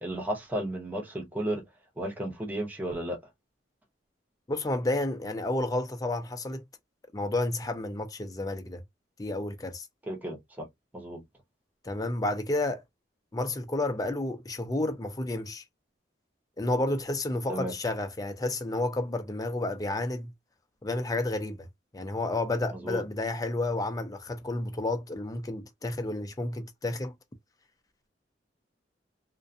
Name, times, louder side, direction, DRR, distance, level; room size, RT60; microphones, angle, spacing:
voice 1, 0.0-1.6 2.0-3.2 10.0-10.7 10.9-11.2 17.5-17.7 22.7-23.0, right 1 dB, 10° right, 0.8 m, -33 dB
voice 2, 4.5-6.6 7.1-8.8 9.2-9.9 11.8-12.8 13.3-15.6 16.6-20.3 20.8-21.7 21.9-27.1, left 2 dB, 20° left, 0.5 m, -31 dB
2.4 x 2.2 x 2.6 m
head